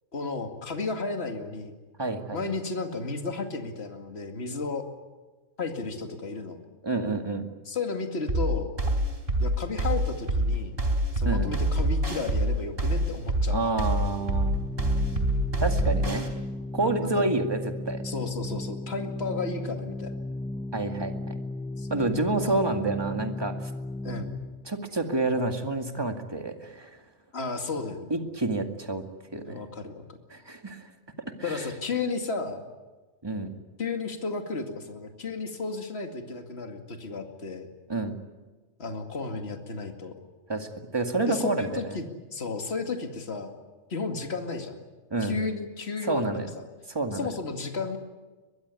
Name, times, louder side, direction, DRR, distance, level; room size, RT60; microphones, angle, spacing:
voice 1, 0.1-1.8 2.3-4.8 5.6-6.6 7.7-8.7 9.4-10.8 11.1-13.7 16.8-17.2 18.0-20.1 21.8-22.6 24.0-24.3 27.3-28.1 29.5-30.2 31.4-32.6 33.8-37.7 38.8-40.1 41.3-43.5 43.9-44.8 45.2-46.7 47.1-48.0, left 4 dB, 50° left, 4 dB, 2.5 m, -33 dB
voice 2, 2.0-2.4 6.8-7.5 11.2-11.5 13.5-14.6 15.6-16.3 16.7-18.0 20.7-21.4 21.9-23.7 24.7-26.9 28.1-29.0 29.3-29.6 30.3-30.9 31.4-31.7 33.2-33.5 37.9-38.2 40.5-42.0 45.1-45.4 46.0-46.5 46.9-47.3, right 2 dB, 15° right, 5 dB, 2.1 m, -29 dB
sound 1, 8.3-16.3, right 1 dB, 45° right, 4.0 m, -25 dB
Organ, 14.0-24.8, left 2 dB, 5° left, 0.4 m, -35 dB
22.5 x 22.0 x 9.7 m, 1.3 s
omnidirectional pair, 1.4 m